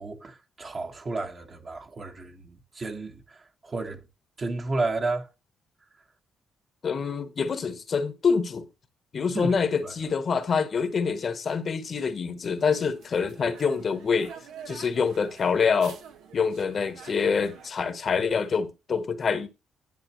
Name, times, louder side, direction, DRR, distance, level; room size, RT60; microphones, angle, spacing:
voice 1, 0.0-4.0 4.4-5.3 9.3-9.6 9.8-9.9, right 3 dB, 35° right, 1.4 m, -32 dB
voice 2, 6.8-8.7 9.1-14.3 14.7-16.0 16.3-19.5, left 5 dB, 45° left, 1.1 m, -26 dB
sound 1, 12.6-17.7, right 7 dB, 90° right, 1.2 m, -47 dB
10.5 x 7.0 x 3.1 m
cardioid pair, 90°, 0 cm